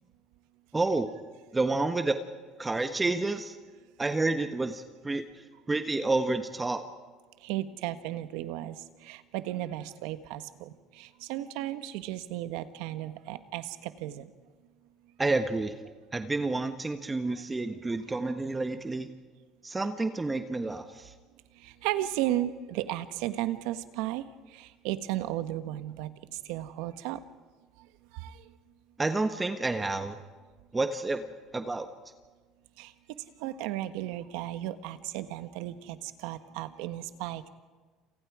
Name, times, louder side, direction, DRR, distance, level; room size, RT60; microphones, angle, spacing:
voice 1, 0.7-1.1 1.5-2.2 2.6-3.6 4.0-5.2 5.7-6.8 15.2-15.7 16.1-19.1 19.6-21.1 29.0-30.2 30.7-31.9, right 3 dB, 15° right, 8 dB, 1.3 m, -29 dB
voice 2, 7.4-14.3 17.2-17.3 21.6-24.2 24.5-26.1 26.4-27.2 28.1-28.4 32.8-32.9 33.4-37.5, right 14 dB, 80° right, 11 dB, 1.3 m, -34 dB
29.0 x 28.0 x 5.0 m, 1.4 s
supercardioid pair, 105°, 0 cm